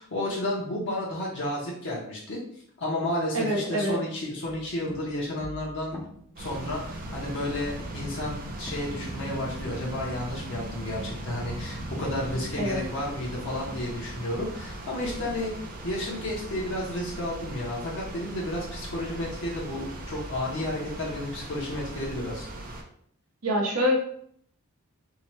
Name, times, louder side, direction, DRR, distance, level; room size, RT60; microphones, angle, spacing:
voice 1, 0.0-2.4 2.8-6.0 6.4-15.5 15.8-22.5, left 1 dB, 55° left, -4 dB, 0.7 m, -32 dB
voice 2, 3.3-4.0 12.6-12.8 23.4-23.9, equal, 75° right, 0 dB, 0.7 m, -25 dB
sound 1, 4.4-9.2 9.6-10.1, equal, 15° left, 0.5 m, -45 dB
sound 2, 6.4-22.8, right 1 dB, 40° right, 0.4 m, -38 dB
2.7 x 2.1 x 3.0 m, 0.65 s
head